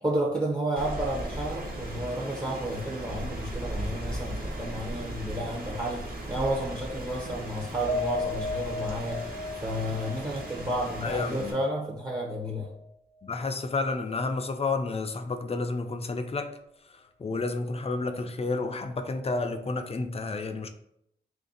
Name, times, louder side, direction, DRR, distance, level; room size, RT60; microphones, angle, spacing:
voice 1, 0.0-9.2 9.6-12.7, right 1 dB, 25° right, -2 dB, 0.7 m, -31 dB
Rain, 0.8-11.5, right 1 dB, 55° right, 1.0 m, -37 dB
Piano, 7.9-12.3 12.7-12.9 13.3-13.4, left 3 dB, 85° right, 0.8 m, -35 dB
voice 2, 11.0-11.6 13.2-16.5 16.8-20.7, left 3 dB, 35° left, 6 dB, 0.4 m, -31 dB
3.2 x 2.6 x 3.9 m, 0.76 s
cardioid pair, 65°, 18 cm